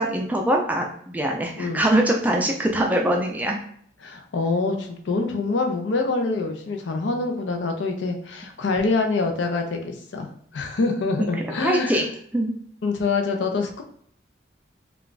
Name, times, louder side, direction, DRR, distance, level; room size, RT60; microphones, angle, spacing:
voice 1, 0.0-3.6 11.2-12.1 12.3-12.5, right 1 dB, 10° right, 1 dB, 0.3 m, -23 dB
voice 2, 4.0-12.1 12.8-13.8, left 3 dB, 75° left, 4 dB, 0.5 m, -25 dB
2.3 x 2.3 x 3.8 m, 0.63 s
head